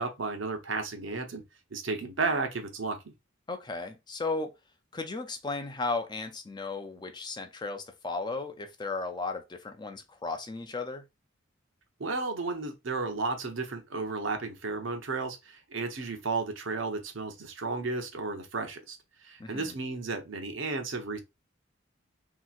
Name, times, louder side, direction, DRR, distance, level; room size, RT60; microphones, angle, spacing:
voice 1, 0.0-1.4 1.7-3.0 12.0-19.0 19.2-21.2, right 3 dB, 75° right, 0.8 m, -33 dB
voice 2, 3.5-4.5 4.9-11.0 19.4-19.7, left 3 dB, 20° left, 0.4 m, -35 dB
3.2 x 2.9 x 2.4 m
head